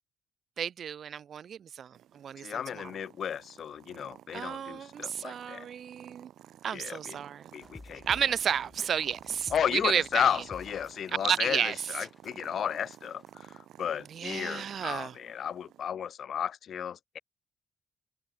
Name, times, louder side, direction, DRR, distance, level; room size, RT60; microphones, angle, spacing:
voice 1, 0.6-2.9 4.3-6.3 6.6-7.5 8.1-10.3 11.2-11.8 14.1-15.1, right 8 dB, 60° right, 0.9 m, -32 dB
Purr, 1.9-15.9, right 12 dB, 75° right, 2.0 m, -53 dB
voice 2, 2.4-5.7 6.7-7.2 7.5-8.1 9.5-17.2, left 8 dB, 60° left, 1.3 m, -33 dB
sound 1, 7.6-13.3, left 2 dB, 20° left, 2.3 m, -52 dB
cardioid pair, 90°, 0 cm